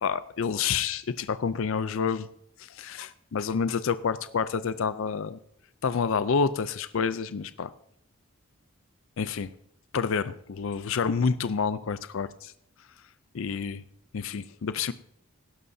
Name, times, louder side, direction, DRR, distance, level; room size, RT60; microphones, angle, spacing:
voice 1, 0.0-2.3 2.6-5.4 5.8-7.7 9.2-9.5 9.9-12.3 13.3-13.8 14.1-14.9, left 6 dB, 65° left, 14 dB, 0.4 m, -28 dB
17.5 x 11.0 x 2.7 m, 0.71 s
head